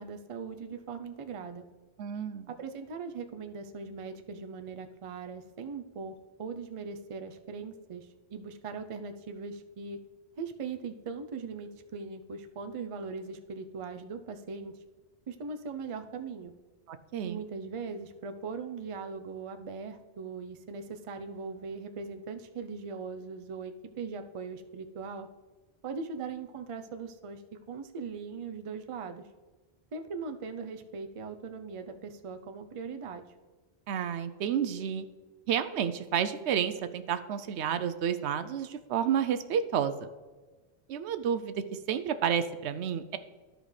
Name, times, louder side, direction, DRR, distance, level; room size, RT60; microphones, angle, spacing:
voice 1, 0.0-1.7 2.5-10.0 10.4-14.8 15.3-16.5 17.2-25.3 25.8-27.4 27.7-29.2 29.9-33.3, right 5 dB, 40° right, 6 dB, 0.5 m, -40 dB
voice 2, 2.0-2.5 16.9-17.4 33.9-35.0 35.5-40.1 40.9-43.2, right 8 dB, 85° right, 11 dB, 0.9 m, -30 dB
13.5 x 5.0 x 3.2 m, 1.3 s
omnidirectional pair, 1.1 m